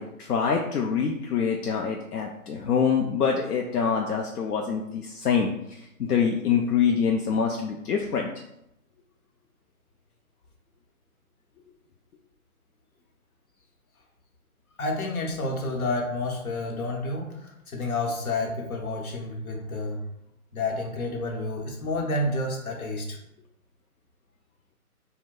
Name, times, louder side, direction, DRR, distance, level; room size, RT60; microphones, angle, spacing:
voice 1, 0.0-8.3, left 6 dB, 90° left, 1 dB, 0.5 m, -25 dB
voice 2, 14.8-20.0 20.5-23.2, left 2 dB, 70° left, 0 dB, 1.0 m, -30 dB
2.7 x 2.2 x 3.6 m, 0.81 s
hypercardioid pair, 155°, 45 cm